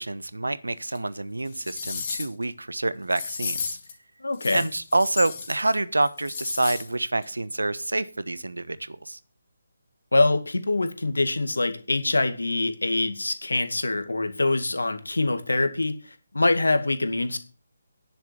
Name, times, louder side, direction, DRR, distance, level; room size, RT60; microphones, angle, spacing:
voice 1, 0.0-3.8 4.5-9.2, right 2 dB, 85° right, 16 dB, 1.2 m, -27 dB
sound 1, 0.9-1.0 1.5-2.4 3.1-3.9 4.3-5.7 6.0-6.9 7.2-7.3, left 5 dB, 40° left, 3.3 m, -34 dB
voice 2, 4.2-4.7 10.1-15.9 16.3-17.4, left 2 dB, 80° left, 8 dB, 2.2 m, -24 dB
10.5 x 7.4 x 8.1 m, 0.37 s
figure-of-eight pair, 150°, 0 cm